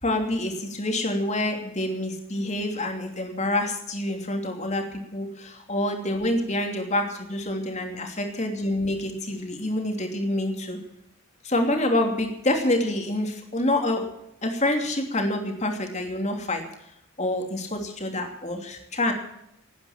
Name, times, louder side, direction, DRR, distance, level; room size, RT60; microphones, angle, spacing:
voice 1, 0.0-4.8 5.1-10.8 11.4-14.1 14.4-16.6 17.2-19.1, left 1 dB, 30° left, 3 dB, 2.9 m, -27 dB
18.0 x 9.6 x 7.4 m, 0.80 s
head